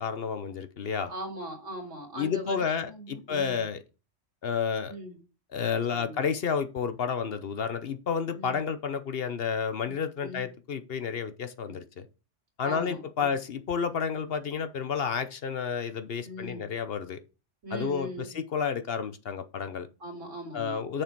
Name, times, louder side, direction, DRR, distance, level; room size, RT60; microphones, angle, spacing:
voice 1, 0.0-1.1 2.1-3.8 4.4-4.9 5.5-12.1 12.6-17.2 17.7-19.9 20.5-21.0, left 6 dB, 55° left, 0.9 m, -31 dB
voice 2, 1.1-3.6 4.9-5.2 5.9-6.3 8.3-8.6 9.8-10.5 11.7-11.8 12.6-13.3 16.2-16.7 17.6-18.4 20.0-20.9, equal, 85° right, 2.9 m, -40 dB
6.7 x 6.4 x 4.5 m
omnidirectional pair, 1.3 m